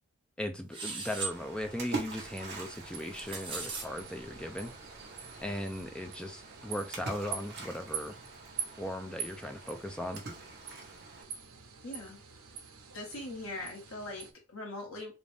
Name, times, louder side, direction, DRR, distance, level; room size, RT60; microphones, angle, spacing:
voice 1, 0.4-4.7 5.4-8.2 8.8-10.2, left 1 dB, 5° left, 5 dB, 0.4 m, -38 dB
sound 1, 0.7-1.3 2.9-3.9, right 4 dB, 25° right, 1.1 m, -38 dB
Splash splatter, 1.3-11.2, right 3 dB, 50° right, 1.2 m, -45 dB
sound 2, 2.1-14.3, right 7 dB, 80° right, 0.8 m, -46 dB
voice 2, 11.8-12.2 12.9-15.1, left 2 dB, 75° left, 0 dB, 1.5 m, -41 dB
3.8 x 2.5 x 3.4 m, 0.28 s
head